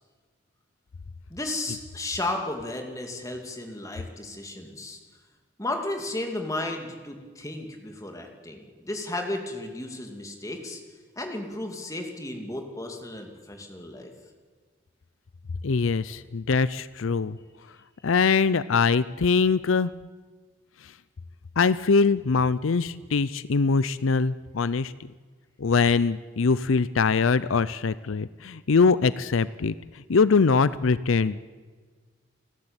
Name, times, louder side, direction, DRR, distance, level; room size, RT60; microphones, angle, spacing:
voice 1, 1.3-5.0 5.6-10.8 11.2-14.1, left 2 dB, 15° left, 3 dB, 2.6 m, -34 dB
voice 2, 15.6-17.4 18.0-19.9 21.6-24.9 25.6-31.4, left 4 dB, 80° left, 16 dB, 0.5 m, -23 dB
30.0 x 12.0 x 8.9 m, 1.5 s
head